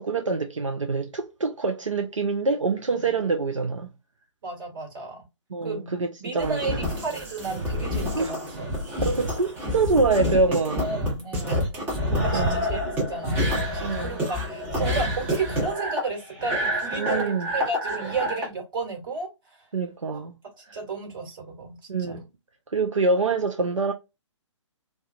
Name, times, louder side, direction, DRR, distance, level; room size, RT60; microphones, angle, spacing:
voice 1, 0.0-3.9 5.5-6.8 8.2-8.3 9.0-10.9 12.1-12.6 13.8-14.2 17.0-17.5 19.7-20.3 20.7-20.8 21.9-22.2 22.7-23.9, right 3 dB, 80° right, 0.4 m, -25 dB
voice 2, 4.4-5.2 5.6-5.9 6.2-8.7 9.2-9.3 10.8-19.6 20.1-20.2 20.7-22.2, right 4 dB, 45° right, 1.4 m, -33 dB
sound 1, 6.4-18.5, equal, 10° right, 0.7 m, -28 dB
2.3 x 2.3 x 2.5 m
figure-of-eight pair, 130°, 16 cm